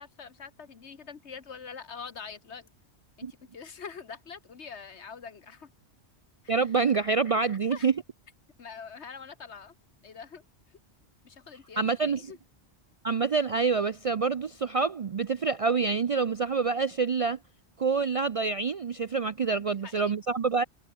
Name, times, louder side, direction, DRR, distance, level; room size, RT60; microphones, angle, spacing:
voice 1, 0.0-2.7 3.2-5.7 6.4-6.6 7.7-7.9 8.6-9.7 10.0-10.4 11.2-12.4 19.5-20.0, left 6 dB, 75° left, 1.7 m, -44 dB
voice 2, 6.5-7.9 11.8-12.3 13.0-17.4 17.8-20.6, right 5 dB, 50° right, 0.4 m, -27 dB
omnidirectional pair, 1.2 m